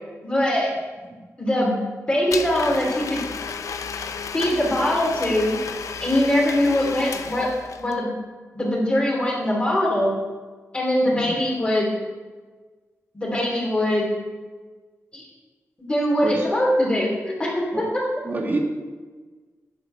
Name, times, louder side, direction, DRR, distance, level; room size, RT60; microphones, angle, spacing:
voice 1, 0.2-0.7 1.4-1.7 2.1-3.2 4.3-5.6 6.0-7.5 7.8-8.1 8.5-10.1 10.7-11.9 13.1-14.1 15.1-15.2 15.8-17.9, left 1 dB, 20° left, -3 dB, 2.9 m, -22 dB
Domestic sounds home sounds, 2.3-8.0, left 6 dB, 85° left, 0.6 m, -33 dB
voice 2, 18.2-18.6, right 2 dB, 35° right, 1 dB, 1.9 m, -27 dB
10.0 x 7.1 x 6.6 m, 1.4 s
wide cardioid pair, 140°, 5 cm